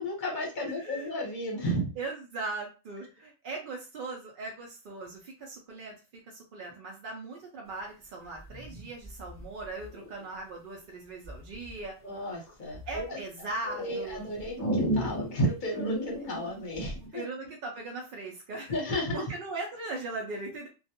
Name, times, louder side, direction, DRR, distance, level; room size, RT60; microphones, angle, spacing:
voice 1, 0.0-1.9 12.0-13.2 13.7-17.2 18.7-19.3, equal, 45° left, -2 dB, 0.9 m, -33 dB
voice 2, 0.7-1.1 2.0-11.9 12.9-14.3 17.1-18.8 19.1-20.7, right 3 dB, 60° right, 0 dB, 0.5 m, -39 dB
sound 1, 8.4-10.2 11.2-11.7 12.2-13.1 13.6-17.1, right 1 dB, 15° left, 0.5 m, -34 dB
2.3 x 2.2 x 2.8 m, 0.31 s
omnidirectional pair, 1.4 m